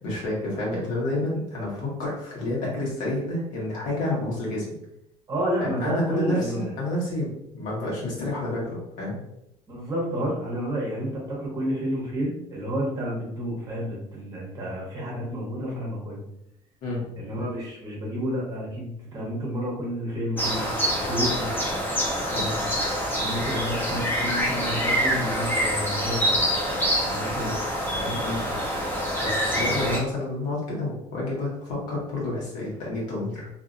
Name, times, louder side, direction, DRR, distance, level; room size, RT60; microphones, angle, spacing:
voice 1, 0.0-4.6 5.8-9.2 16.8-17.0 22.3-22.6 28.2-28.4 29.2-33.5, left 1 dB, 70° left, -4 dB, 1.4 m, -29 dB
voice 2, 5.3-6.7 9.7-16.2 17.2-21.5 23.0-26.3 27.0-27.5 27.9-28.2 29.5-29.9, equal, 25° right, -3 dB, 0.9 m, -30 dB
sound 1, 20.4-30.0, equal, 15° left, 0.8 m, -26 dB
2.7 x 2.7 x 2.5 m, 0.81 s
cardioid pair, 150°, 14 cm